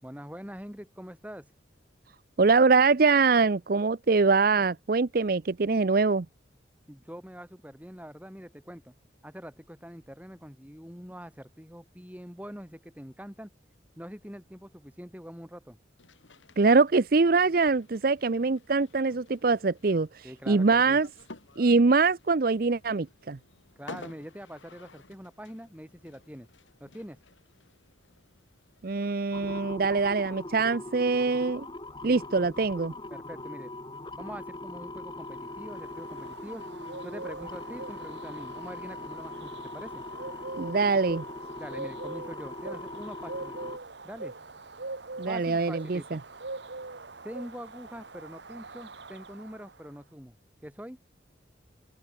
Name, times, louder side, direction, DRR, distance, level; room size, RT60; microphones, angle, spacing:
voice 1, 0.0-1.5 6.9-8.9 9.2-13.5 14.0-15.8 20.2-21.0 23.8-26.5 26.8-27.2 33.1-33.7 34.1-36.6 37.0-40.0 41.6-43.7 44.0-44.3 45.3-46.2 47.2-50.3 50.6-51.0, equal, 10° right, 7.6 m, -44 dB
voice 2, 2.4-6.3 16.6-21.1 21.6-23.4 28.8-31.7 32.0-32.9 40.6-41.2 45.2-46.2, right 4 dB, 50° right, 0.6 m, -23 dB
sound 1, 16.0-28.9, left 2 dB, 85° left, 3.3 m, -52 dB
sound 2, 29.3-43.8, left 2 dB, 25° left, 3.8 m, -41 dB
sound 3, 35.2-49.9, right 3 dB, 65° right, 1.6 m, -43 dB
open air
head